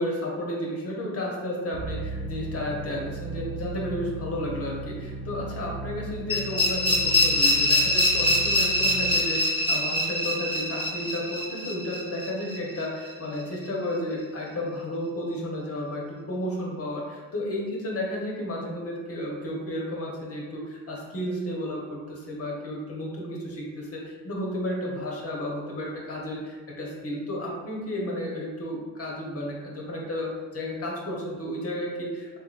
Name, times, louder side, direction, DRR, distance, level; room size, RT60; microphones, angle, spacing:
voice 1, 0.0-32.4, left 1 dB, 35° left, -2 dB, 1.0 m, -32 dB
sound 1, 1.7-9.1, right 3 dB, 75° left, 0.9 m, -36 dB
sound 2, 6.3-13.1, left 1 dB, 10° left, 1.0 m, -24 dB
3.4 x 3.1 x 2.4 m, 1.4 s
hypercardioid pair, 65°, 41 cm